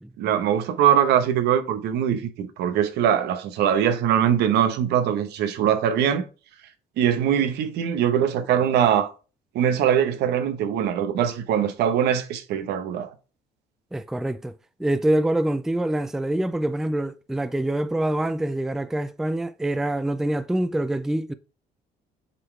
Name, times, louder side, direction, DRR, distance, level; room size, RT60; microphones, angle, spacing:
voice 1, 0.2-6.3 7.0-9.1 9.5-13.1, right 9 dB, 80° right, 1.1 m, -22 dB
voice 2, 13.9-14.5 14.8-21.3, right 1 dB, 5° right, 0.3 m, -25 dB
7.9 x 4.0 x 3.2 m
cardioid pair, 110°, 17 cm